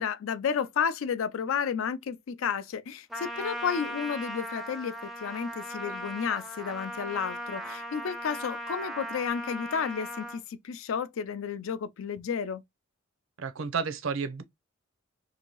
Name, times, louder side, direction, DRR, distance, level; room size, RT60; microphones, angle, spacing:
voice 1, 0.0-12.6, left 7 dB, 70° left, 0.4 m, -32 dB
Trumpet, 3.1-10.4, equal, ahead, 0.4 m, -38 dB
voice 2, 13.4-14.4, right 5 dB, 65° right, 0.5 m, -31 dB
2.8 x 2.6 x 2.9 m
head